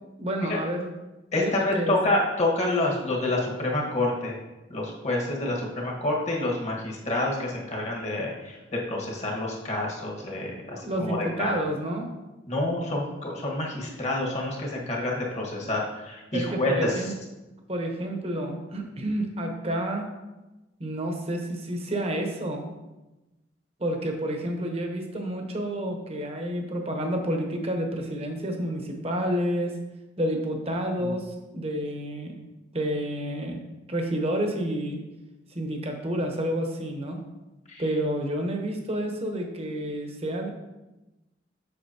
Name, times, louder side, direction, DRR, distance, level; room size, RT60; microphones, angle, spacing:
voice 1, 0.2-0.9 1.4-2.0 10.7-12.1 16.3-17.1 17.7-20.0 20.8-22.6 23.8-29.8 30.2-32.3 32.7-33.6 33.9-35.0 35.5-37.2 37.8-40.5, right 1 dB, 30° right, 3 dB, 1.0 m, -29 dB
voice 2, 1.3-4.4 4.7-11.5 12.5-17.0 31.0-31.1 37.7-37.8, left 2 dB, 35° left, -2 dB, 1.5 m, -28 dB
7.9 x 6.1 x 2.9 m, 1.1 s
head